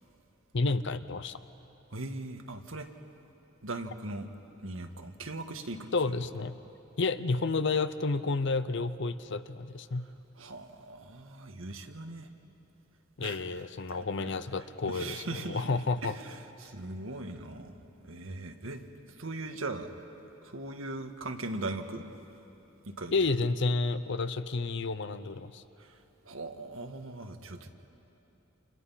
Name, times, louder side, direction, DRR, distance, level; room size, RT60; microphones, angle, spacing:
voice 1, 0.5-1.4 5.9-6.5 7.0-10.1 13.2-16.1 23.1-25.6, left 3 dB, 65° left, 12 dB, 0.7 m, -30 dB
voice 2, 1.9-2.9 3.6-4.3 4.6-5.9 9.9-12.3 13.2-13.6 13.9-18.8 19.1-19.9 20.4-22.0 22.8-23.1 25.8-27.7, right 2 dB, 85° right, 5 dB, 1.6 m, -40 dB
29.0 x 29.0 x 5.7 m, 2.9 s
head